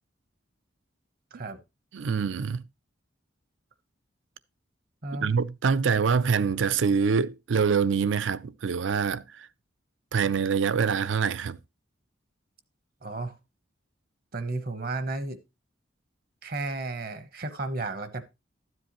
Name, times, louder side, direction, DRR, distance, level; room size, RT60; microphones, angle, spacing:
voice 1, 1.9-2.6 5.2-9.5 10.1-11.6, right 6 dB, 75° right, 0.4 m, -25 dB
voice 2, 13.0-13.4 14.3-15.4 16.4-18.2, right 2 dB, 50° right, 1.0 m, -33 dB
13.0 x 7.7 x 3.0 m
head